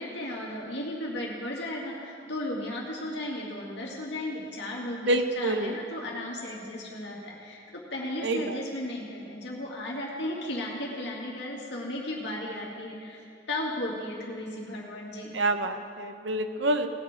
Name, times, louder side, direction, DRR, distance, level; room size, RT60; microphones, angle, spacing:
voice 1, 0.0-15.4, left 1 dB, 65° left, -3 dB, 2.6 m, -35 dB
voice 2, 5.0-5.7 8.2-8.6 15.3-16.9, right 2 dB, 75° right, 8 dB, 0.8 m, -27 dB
19.0 x 7.2 x 5.2 m, 2.5 s
head